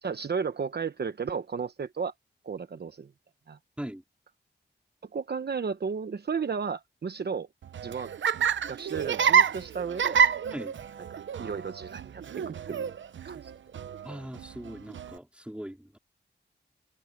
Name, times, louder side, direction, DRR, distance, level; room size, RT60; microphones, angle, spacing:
voice 1, 0.0-2.1 2.4-3.1 3.5-3.6 5.1-7.5 7.8-8.1 8.7-10.2 11.4-12.9 13.2-13.5, right 6 dB, 60° right, 1.0 m, -33 dB
Laughter, 7.6-15.2, right 7 dB, 85° right, 0.7 m, -28 dB
voice 2, 14.0-16.0, equal, 5° right, 3.8 m, -40 dB
cardioid pair, 60°, 19 cm